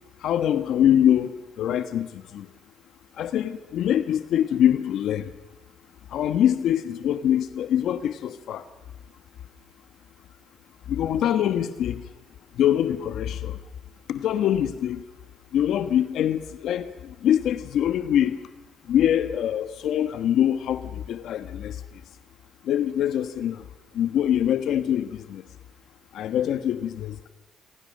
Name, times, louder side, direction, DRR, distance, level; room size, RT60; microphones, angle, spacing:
voice 1, 0.2-2.1 2.3-2.4 3.2-5.2 6.1-8.6 10.9-12.0 12.6-13.5 14.1-15.0 15.5-16.8 17.2-18.4 18.9-21.7 22.7-23.5 23.9-25.4 26.1-27.3, left 10 dB, 75° left, 10 dB, 1.2 m, -24 dB
28.0 x 26.5 x 6.6 m, 1.2 s
cardioid pair, 90°, 0 cm